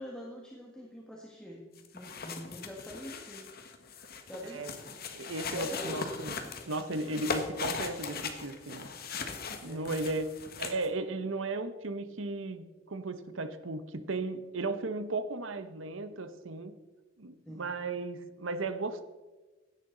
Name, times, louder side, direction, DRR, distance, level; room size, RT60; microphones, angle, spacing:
voice 1, 0.0-1.7 1.9-3.5 4.3-4.6 5.5-6.1 6.4-6.6 7.1-7.3 9.6-10.0 17.5-17.7, equal, 5° left, -2 dB, 1.7 m, -44 dB
sound 1, 1.8-10.9, left 4 dB, 55° left, 1.5 m, -39 dB
voice 2, 5.1-6.4 6.7-8.9 9.6-10.3 10.6-16.8 17.2-19.0, right 2 dB, 80° right, 11 dB, 1.0 m, -35 dB
16.5 x 11.0 x 3.9 m, 1.3 s
head